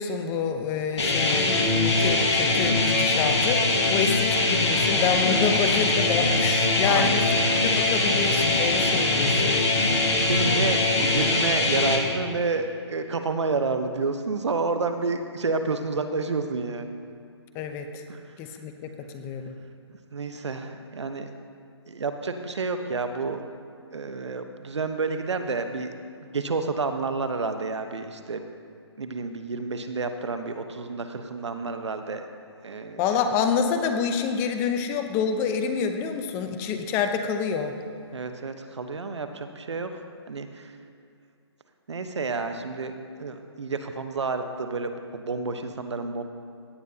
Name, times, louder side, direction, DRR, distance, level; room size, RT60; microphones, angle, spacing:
voice 1, 0.0-9.7 17.5-18.0 18.4-19.6 33.0-37.7, left 6 dB, 15° left, 6 dB, 0.6 m, -28 dB
sound 1, 1.0-12.0, left 2 dB, 75° left, 2.1 m, -22 dB
voice 2, 6.9-7.3 9.5-16.9 18.1-18.2 20.1-21.3 21.9-23.4 23.9-25.9 26.2-28.4 29.0-32.3 32.6-33.0 38.1-39.9 40.3-40.7 41.9-46.2, right 4 dB, 75° right, 7 dB, 1.0 m, -30 dB
17.0 x 9.3 x 2.8 m, 2.4 s
hypercardioid pair, 145°, 15 cm